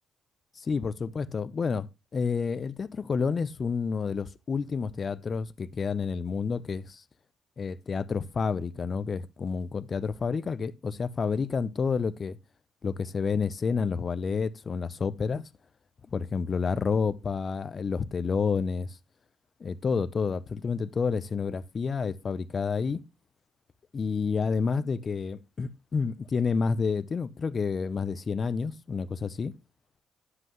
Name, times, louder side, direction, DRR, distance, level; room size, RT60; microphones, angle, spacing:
voice 1, 0.6-1.9 2.1-7.0 7.6-12.4 12.8-15.4 16.1-19.0 19.6-23.0 23.9-29.5, left 5 dB, 40° left, 0.7 m, -29 dB
9.7 x 7.8 x 3.0 m
cardioid pair, 90°, 0 cm